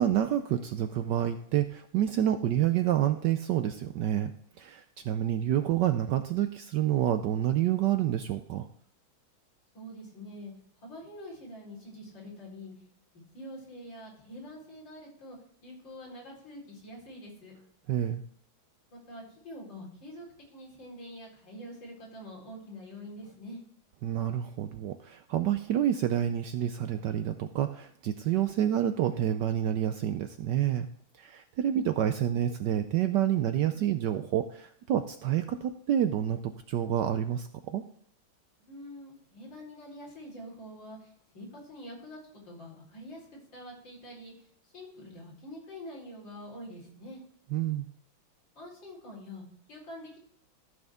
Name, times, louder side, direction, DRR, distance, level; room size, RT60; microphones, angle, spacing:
voice 1, 0.0-4.3 4.6-8.7 17.9-18.2 24.0-30.9 31.1-37.8 47.5-47.9, right 11 dB, 75° right, 9 dB, 1.0 m, -28 dB
voice 2, 9.7-10.5 10.8-12.7 13.3-17.5 18.9-20.2 20.5-23.6 38.6-42.2 42.4-47.2 48.5-50.2, equal, 60° left, -4 dB, 4.8 m, -45 dB
14.0 x 6.4 x 3.5 m, 0.64 s
omnidirectional pair, 2.3 m